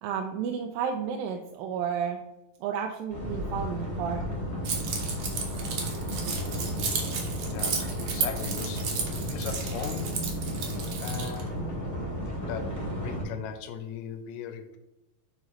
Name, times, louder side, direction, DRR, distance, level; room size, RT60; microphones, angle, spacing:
voice 1, 0.0-2.2 2.6-4.4, right 7 dB, 85° right, 3 dB, 2.3 m, -32 dB
sound 1, 3.1-13.2, equal, 15° left, 0.6 m, -33 dB
Keys jangling, 4.6-11.4, right 5 dB, 60° right, 1.7 m, -33 dB
voice 2, 7.5-8.9 9.2-10.2 11.0-11.8 12.4-14.8, left 7 dB, 80° left, 6 dB, 1.7 m, -38 dB
11.0 x 3.8 x 3.1 m, 0.94 s
omnidirectional pair, 4.1 m